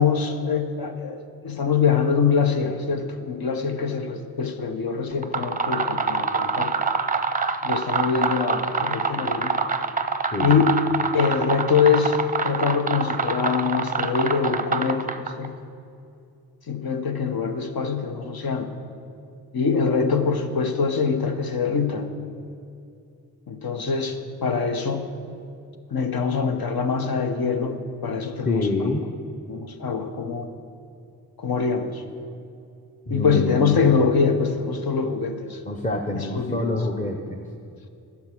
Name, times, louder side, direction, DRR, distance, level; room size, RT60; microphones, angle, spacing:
voice 1, 0.0-6.7 7.6-9.6 10.4-10.6 11.1-15.6 16.7-18.7 19.5-22.1 23.5-25.1 25.9-28.9 29.5-30.5 31.4-32.0 33.1-35.6 36.1-36.8, left 5 dB, 65° left, 6 dB, 1.0 m, -24 dB
sound 1, 5.1-15.5, right 4 dB, 20° right, 0.5 m, -26 dB
voice 2, 28.4-29.0 33.1-33.8 35.7-37.5, left 2 dB, 20° left, 1 dB, 0.8 m, -26 dB
11.5 x 7.2 x 6.0 m, 2.6 s
cardioid pair, 60°, 40 cm